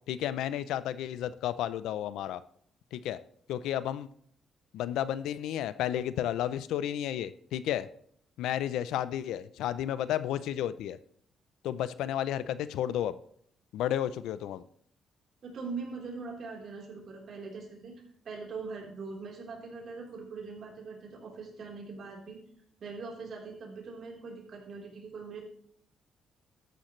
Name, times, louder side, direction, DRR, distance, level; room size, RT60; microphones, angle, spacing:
voice 1, 0.1-2.4 2.9-3.2 3.5-4.1 4.7-7.9 8.4-11.0 11.6-13.2 13.7-14.6, left 11 dB, 85° left, 15 dB, 0.5 m, -32 dB
voice 2, 15.4-22.4 22.8-25.4, right 4 dB, 60° right, -1 dB, 3.8 m, -42 dB
13.0 x 9.9 x 3.2 m, 0.64 s
cardioid pair, 90°, 0 cm